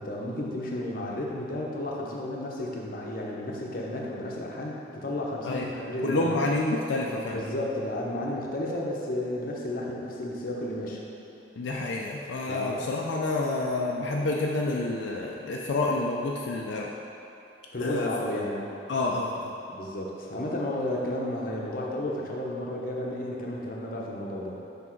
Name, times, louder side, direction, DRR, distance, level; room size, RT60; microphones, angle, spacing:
voice 1, 0.0-6.3 7.3-11.0 12.5-12.9 17.7-18.7 19.7-24.6, left 1 dB, 50° left, -2 dB, 0.7 m, -32 dB
voice 2, 6.0-7.4 11.6-16.9 17.8-18.1 18.9-19.5, left 2 dB, 80° left, -2 dB, 0.4 m, -28 dB
6.1 x 3.5 x 4.5 m, 2.8 s
head